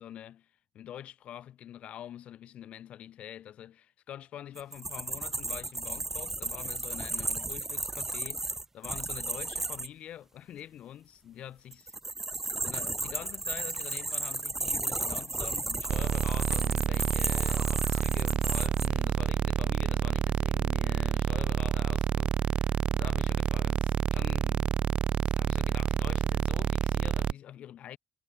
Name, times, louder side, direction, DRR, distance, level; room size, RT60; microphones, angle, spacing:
voice 1, 0.0-11.9 12.6-28.0, left 11 dB, 80° left, 3.4 m, -45 dB
sound 1, 4.6-9.9 11.7-18.9, right 2 dB, 15° right, 0.6 m, -34 dB
sound 2, 15.9-27.3, right 8 dB, 60° right, 0.4 m, -28 dB
cardioid pair, 130°, 2 cm